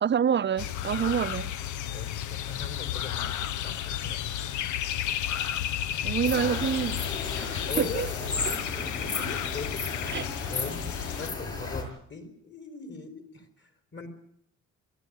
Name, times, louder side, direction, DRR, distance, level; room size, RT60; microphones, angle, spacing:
voice 1, 0.0-1.6 6.0-7.0 7.3-8.1 8.5-8.6 10.1-10.2, right 8 dB, 35° right, 0.7 m, -27 dB
sound 1, 0.6-11.3, left 11 dB, 80° left, 0.8 m, -33 dB
voice 2, 1.9-4.6 5.2-5.3 7.7-8.2 8.5-14.1, left 4 dB, 40° left, 4.1 m, -41 dB
sound 2, 6.2-11.8, left 3 dB, 55° left, 7.1 m, -34 dB
22.5 x 14.0 x 9.4 m
cardioid pair, 90°, 30 cm